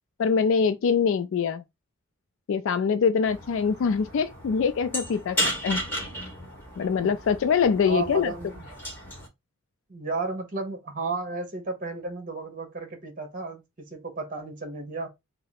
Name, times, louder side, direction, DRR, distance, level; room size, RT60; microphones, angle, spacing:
voice 1, 0.2-1.6 2.5-5.8 6.8-8.3, left 6 dB, 65° left, 0.3 m, -24 dB
sound 1, 3.2-9.3, equal, 10° left, 1.3 m, -34 dB
voice 2, 7.8-8.7 9.9-13.6 13.9-15.1, right 3 dB, 40° right, 1.1 m, -33 dB
3.7 x 2.1 x 4.0 m
head